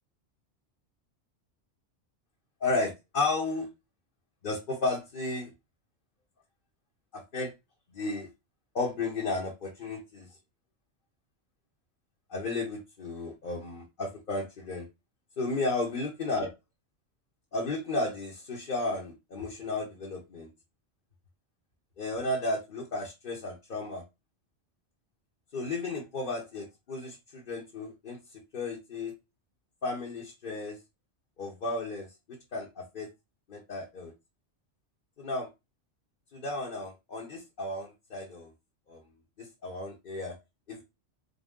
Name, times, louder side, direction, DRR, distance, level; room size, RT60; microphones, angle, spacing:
voice 1, 2.6-3.7 4.4-5.5 7.1-7.5 7.9-8.3 8.7-10.3 12.3-14.8 15.4-16.5 17.5-20.5 22.0-24.0 25.5-28.2 28.5-29.1 29.8-30.8 31.4-32.1 32.5-33.1 33.5-34.1 35.2-35.5 36.3-38.5 38.9-39.0 39.4-40.3 40.7-40.8, left 2 dB, 50° left, -1 dB, 1.0 m, -33 dB
4.1 x 2.6 x 3.6 m, 0.23 s
omnidirectional pair, 1.2 m